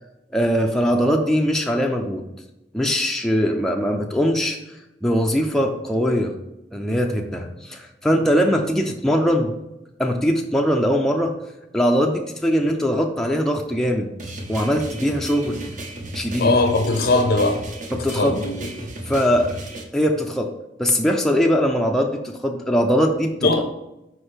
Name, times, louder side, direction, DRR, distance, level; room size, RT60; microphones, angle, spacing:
voice 1, 0.3-2.3 2.7-4.6 5.0-6.3 6.7-9.5 10.0-11.4 11.7-14.1 14.5-15.6 16.1-16.5 17.9-18.4 19.1-19.5 19.9-20.5 20.8-23.5, equal, 5° left, 1 dB, 0.4 m, -21 dB
sound 1, 14.2-19.8, right 1 dB, 45° right, 0.9 m, -34 dB
voice 2, 16.4-17.6 18.1-18.7 23.4-23.7, left 2 dB, 60° left, 5 dB, 0.5 m, -20 dB
4.9 x 4.4 x 4.4 m, 0.95 s
head